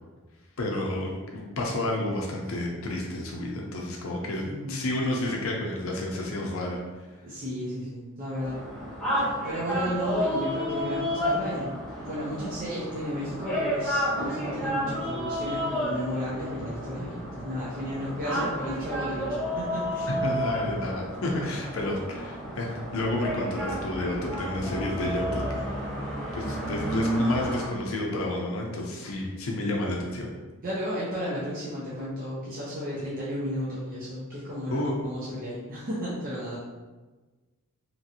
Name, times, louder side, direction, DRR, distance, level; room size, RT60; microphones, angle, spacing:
voice 1, 0.6-7.1 9.7-9.8 20.1-25.6 26.3-30.3 34.7-35.1, left 1 dB, 75° left, -1 dB, 0.5 m, -30 dB
voice 2, 4.4-4.7 7.2-8.6 9.2-11.7 12.0-20.1 30.6-36.6, equal, 40° right, -8 dB, 0.6 m, -33 dB
sound 1, 8.4-27.7, equal, 5° left, 0.9 m, -31 dB
2.9 x 2.5 x 2.7 m, 1.3 s
head